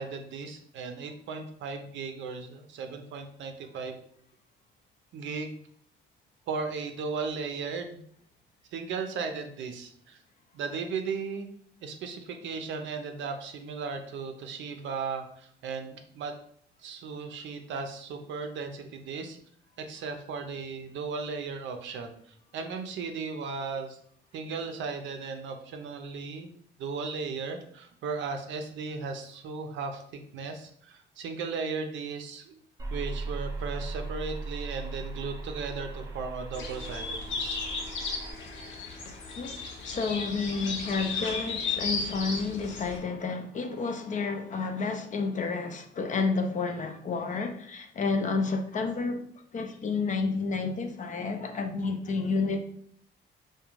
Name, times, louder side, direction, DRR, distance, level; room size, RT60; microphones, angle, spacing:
voice 1, 0.0-4.0 5.1-5.6 6.5-8.0 8.7-10.2 10.5-11.5 11.8-16.3 16.8-19.4 19.8-24.0 24.3-26.5 26.8-32.6 32.9-37.6, right 5 dB, 70° right, 6 dB, 0.5 m, -36 dB
sound 1, 32.8-38.3, right 3 dB, 15° right, 0.5 m, -38 dB
sound 2, 36.5-43.0, left 4 dB, 75° left, 0.6 m, -35 dB
voice 2, 39.4-49.2 49.5-52.6, left 4 dB, 40° left, 7 dB, 0.4 m, -30 dB
2.4 x 2.2 x 3.0 m, 0.63 s
cardioid pair, 90°, 20 cm